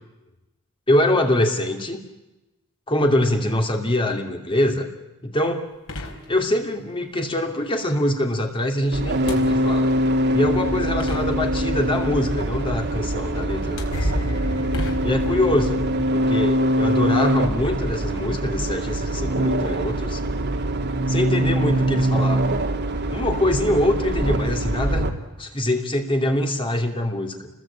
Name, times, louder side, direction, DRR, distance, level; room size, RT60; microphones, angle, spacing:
voice 1, 0.9-2.0 2.9-4.9 5.2-5.7 6.3-10.0 10.3-14.3 15.0-15.9 16.1-20.2 21.1-22.5 23.1-25.1 25.4-27.5, left 1 dB, 25° left, 3 dB, 2.8 m, -23 dB
sound 1, 5.5-5.6 5.9-6.8 9.1-10.0 10.7-10.8 11.0-11.9 13.0-13.2 13.6-15.7, left 1 dB, 65° left, 4.7 m, -36 dB
sound 2, 8.9-25.1, right 1 dB, 50° right, 2.6 m, -23 dB
sound 3, 13.9-17.1 17.4-17.6, equal, 90° left, 1.8 m, -31 dB
29.5 x 21.5 x 8.9 m, 1.0 s
head